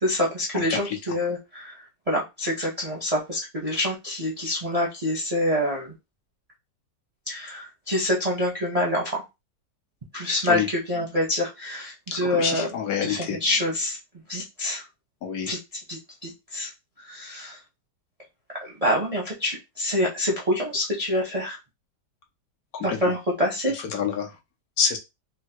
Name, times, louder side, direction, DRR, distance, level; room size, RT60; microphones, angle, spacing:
voice 1, 0.0-5.9 7.3-9.2 10.1-12.7 13.0-14.0 14.3-14.8 15.4-15.6 15.9-16.7 17.0-17.6 18.6-21.6 22.8-23.8, left 1 dB, 45° right, -3 dB, 0.4 m, -26 dB
voice 2, 0.5-1.0 10.5-10.7 12.2-13.4 15.2-15.5 22.7-23.0 23.7-24.4 24.8-25.0, left 7 dB, 70° left, 3 dB, 1.0 m, -27 dB
3.7 x 2.1 x 2.7 m, 0.23 s
omnidirectional pair, 1.8 m